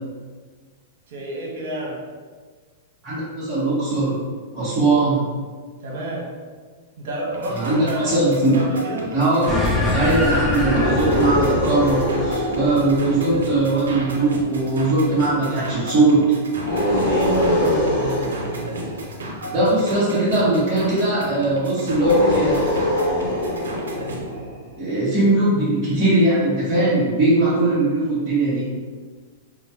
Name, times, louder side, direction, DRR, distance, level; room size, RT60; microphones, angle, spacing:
voice 1, 1.1-2.0 5.8-6.3 7.0-9.1 17.0-18.2, right 1 dB, 65° right, -3 dB, 1.0 m, -29 dB
voice 2, 3.0-4.2 4.5-5.3 7.5-8.6 9.1-9.5 9.9-16.4 19.5-22.6 24.8-28.7, right 2 dB, 20° right, -14 dB, 1.1 m, -20 dB
sound 1, 7.3-24.2, right 1 dB, 90° right, 0.6 m, -35 dB
sound 2, 9.5-14.2, left 2 dB, 15° left, 0.5 m, -25 dB
sound 3, 10.6-14.2 16.6-19.7 21.9-24.6, left 1 dB, 60° left, 1.0 m, -24 dB
3.0 x 2.2 x 2.8 m, 1.5 s
hypercardioid pair, 130°, 0 cm